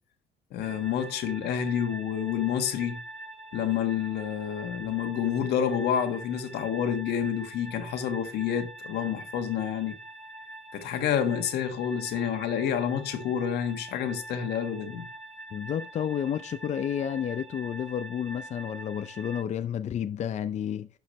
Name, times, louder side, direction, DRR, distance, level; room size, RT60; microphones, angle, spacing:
voice 1, 0.5-3.0 3.5-9.9 10.7-15.0, left 9 dB, 75° left, 1.6 m, -29 dB
sound 1, 0.6-19.4, right 1 dB, 35° right, 4.2 m, -44 dB
voice 2, 15.5-20.9, left 9 dB, 45° left, 0.5 m, -31 dB
12.0 x 4.9 x 3.2 m
cardioid pair, 110°, 17 cm